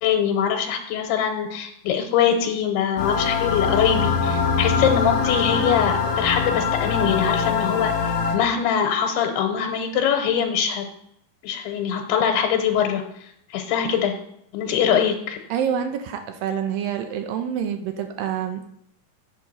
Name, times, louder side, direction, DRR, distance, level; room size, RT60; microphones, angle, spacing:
voice 1, 0.0-10.9 11.4-14.2 14.5-15.4, left 8 dB, 90° left, 3 dB, 2.9 m, -23 dB
sound 1, 3.0-8.4, left 5 dB, 50° left, 2.5 m, -23 dB
voice 2, 15.5-18.7, right 8 dB, 75° right, 7 dB, 2.1 m, -27 dB
7.9 x 7.2 x 5.5 m, 0.74 s
omnidirectional pair, 4.6 m